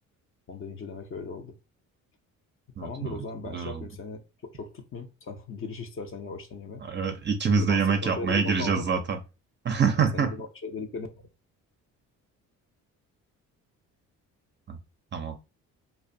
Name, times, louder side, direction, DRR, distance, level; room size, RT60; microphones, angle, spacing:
voice 1, 0.5-1.5 2.8-4.2 4.5-6.8 7.4-8.9 9.9-11.1, left 4 dB, 40° left, 0.6 m, -38 dB
voice 2, 2.8-3.2 3.5-3.8 6.8-9.2 9.6-10.4 14.7-14.8 15.1-15.4, right 5 dB, 30° right, 0.5 m, -26 dB
2.4 x 2.2 x 2.5 m
supercardioid pair, 75°, 34 cm